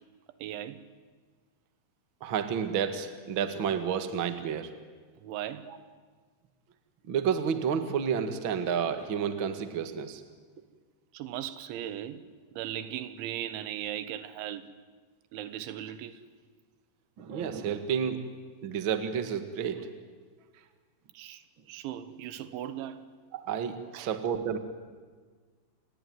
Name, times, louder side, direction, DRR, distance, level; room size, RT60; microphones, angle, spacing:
voice 1, 0.4-0.9 5.2-5.7 11.1-12.2 12.5-14.7 15.3-16.2 21.1-23.1 23.9-24.2, right 11 dB, 85° right, 3.5 m, -38 dB
voice 2, 2.2-4.7 5.7-5.8 7.1-10.2 17.2-18.2 18.6-19.9 23.3-24.6, right 7 dB, 65° right, 1.2 m, -30 dB
29.0 x 21.0 x 9.4 m
omnidirectional pair, 5.3 m